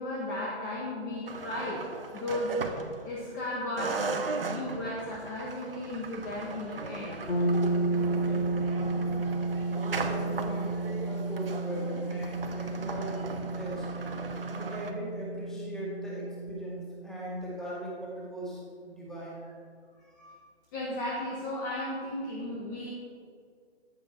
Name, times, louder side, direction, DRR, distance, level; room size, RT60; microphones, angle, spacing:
voice 1, 0.0-2.7 3.0-4.1 4.5-7.3 20.0-20.4 20.7-22.9, left 1 dB, 15° left, -5 dB, 1.4 m, -35 dB
sound 1, 1.3-3.4 3.8-14.9, right 3 dB, 55° right, 1.4 m, -38 dB
sound 2, 7.3-17.1, right 2 dB, 80° left, 3.1 m, -32 dB
voice 2, 8.0-9.0 9.7-13.8 14.5-19.4, equal, ahead, -6 dB, 2.1 m, -40 dB
14.5 x 10.5 x 4.6 m, 2.1 s
figure-of-eight pair, 150°, 34 cm